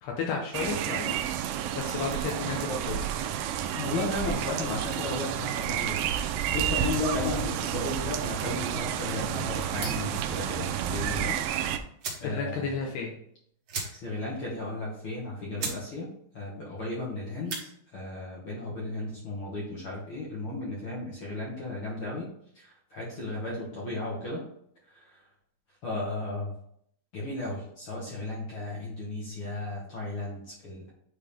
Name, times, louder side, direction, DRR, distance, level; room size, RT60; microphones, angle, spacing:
voice 1, 0.0-3.2 4.5-4.6 12.2-13.2 13.8-13.9, left 5 dB, 80° left, 0 dB, 3.1 m, -33 dB
sound 1, 0.5-11.8, right 10 dB, 85° right, 2.0 m, -30 dB
voice 2, 3.7-11.4 12.2-12.7 14.0-16.1 16.3-17.6 17.9-22.3 22.9-24.4 25.8-26.5 27.1-30.9, left 2 dB, 45° left, -5 dB, 1.9 m, -34 dB
sound 2, 9.8-10.2 11.5-11.6 12.0-12.3 12.7-12.8 13.0-13.2 13.7-14.3 14.6-14.7 15.2-15.3 15.6-15.8 16.2-16.5 17.3-17.7, right 4 dB, 65° right, 1.3 m, -36 dB
9.6 x 4.0 x 3.5 m, 0.67 s
omnidirectional pair, 4.7 m